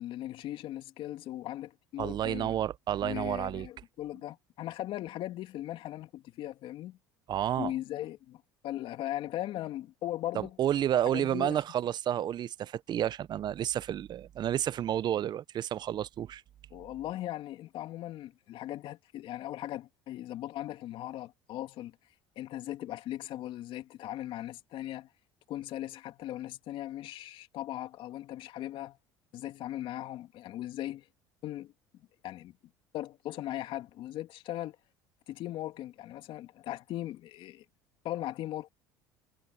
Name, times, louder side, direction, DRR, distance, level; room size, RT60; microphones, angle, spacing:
voice 1, 0.0-2.5 3.0-7.0 7.6-10.6 11.1-11.6 16.7-22.0 22.4-25.1 25.5-29.0 29.3-31.1 31.4-32.6 32.9-34.8 35.3-37.6 38.0-38.7, left 14 dB, 60° left, 2.6 m, -39 dB
voice 2, 2.0-3.7 7.3-7.7 10.3-16.4, right 11 dB, 45° right, 0.8 m, -30 dB
hypercardioid pair, 75°, 10 cm